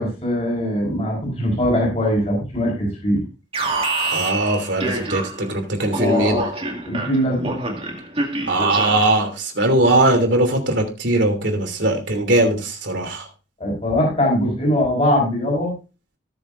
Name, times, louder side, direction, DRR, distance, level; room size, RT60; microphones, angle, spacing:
voice 1, 0.0-3.2 6.0-6.4 6.9-7.5 13.6-15.7, equal, 30° left, -2 dB, 5.4 m, -21 dB
Alarm, 3.5-5.5 5.9-9.2, right 2 dB, 30° right, 2.1 m, -26 dB
voice 2, 4.1-6.4 8.5-13.3, right 2 dB, 65° right, 4 dB, 3.0 m, -20 dB
18.5 x 7.0 x 2.6 m, 0.31 s
head